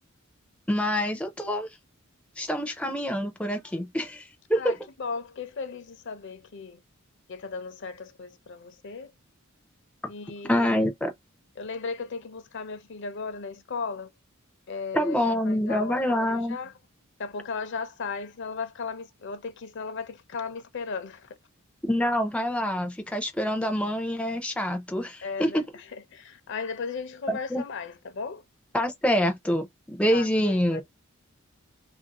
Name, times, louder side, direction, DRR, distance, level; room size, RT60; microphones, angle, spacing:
voice 1, 0.7-1.7 2.4-4.7 10.5-11.1 14.9-16.6 21.8-25.6 27.3-27.6 28.7-30.8, equal, 5° left, 0.5 m, -26 dB
voice 2, 4.5-6.8 7.3-9.1 10.1-10.9 11.6-14.1 14.7-16.7 17.2-21.4 25.2-25.6 25.9-28.4 30.1-30.8, left 4 dB, 60° left, 0.6 m, -36 dB
2.9 x 2.6 x 2.9 m
head